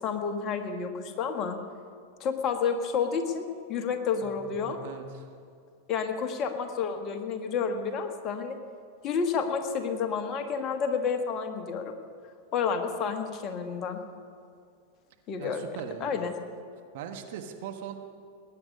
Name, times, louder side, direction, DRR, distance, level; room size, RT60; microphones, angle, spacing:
voice 1, 0.0-1.6 2.2-4.8 5.9-8.6 9.0-12.0 12.5-14.0 15.3-15.6 16.0-16.3, left 6 dB, 35° left, 6 dB, 1.5 m, -30 dB
voice 2, 4.2-5.2 15.4-16.2 16.9-18.0, right 8 dB, 55° right, 5 dB, 1.3 m, -40 dB
20.0 x 9.7 x 5.3 m, 2.4 s
figure-of-eight pair, 90°, 0 cm